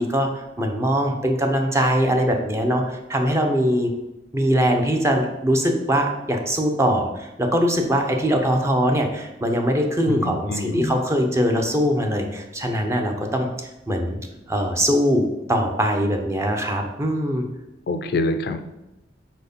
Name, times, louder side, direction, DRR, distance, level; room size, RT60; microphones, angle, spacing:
voice 1, 0.0-3.9 4.3-14.2 14.5-17.5, equal, 15° right, 3 dB, 0.8 m, -22 dB
voice 2, 10.1-11.0 17.9-18.6, left 2 dB, 60° left, 9 dB, 0.4 m, -26 dB
4.5 x 4.5 x 5.3 m, 0.95 s
head